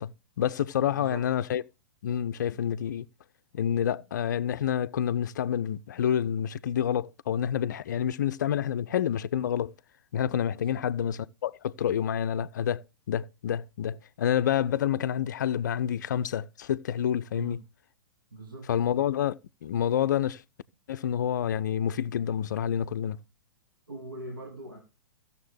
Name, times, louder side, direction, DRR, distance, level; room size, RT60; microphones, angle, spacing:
voice 1, 0.0-1.6 2.0-3.1 3.5-9.7 10.1-17.6 18.7-20.4 20.9-23.2, left 9 dB, 55° left, 0.4 m, -28 dB
voice 2, 0.9-1.3 10.5-10.9 17.3-17.6 18.3-18.8 23.9-24.8, right 2 dB, 75° right, 2.1 m, -42 dB
16.0 x 6.7 x 3.2 m
figure-of-eight pair, 105°, 11 cm